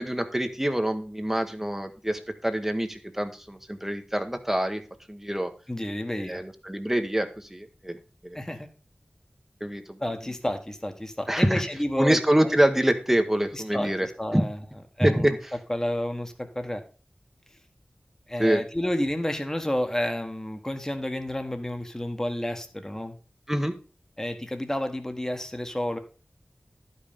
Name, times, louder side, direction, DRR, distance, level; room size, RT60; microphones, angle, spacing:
voice 1, 0.0-4.8 5.1-5.5 6.3-8.0 8.2-8.4 9.6-10.0 11.3-11.6 12.0-14.1 14.3-14.4 15.0-15.3 18.4-18.6 23.5-23.7, right 1 dB, 10° right, 7 dB, 1.0 m, -25 dB
voice 2, 5.7-6.4 8.3-8.7 10.0-12.5 13.5-14.6 15.0-15.4 15.7-16.8 18.3-23.2 24.2-26.0, left 1 dB, 15° left, 6 dB, 1.3 m, -30 dB
11.5 x 5.6 x 5.1 m, 0.35 s
wide cardioid pair, 65°, 3 cm